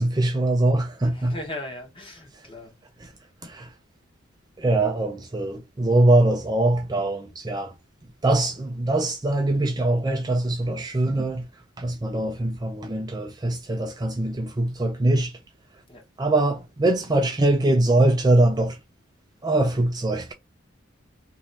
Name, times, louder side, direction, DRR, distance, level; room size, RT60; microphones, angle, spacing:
voice 1, 0.0-1.3 3.0-3.1 3.4-3.7 4.6-7.8 8.2-15.4 15.7-15.8 16.2-18.8 19.4-20.3, right 2 dB, 20° right, 0.4 m, -22 dB
voice 2, 1.0-2.8 15.9-16.0, left 1 dB, 25° left, 1.3 m, -38 dB
3.1 x 2.8 x 4.0 m
head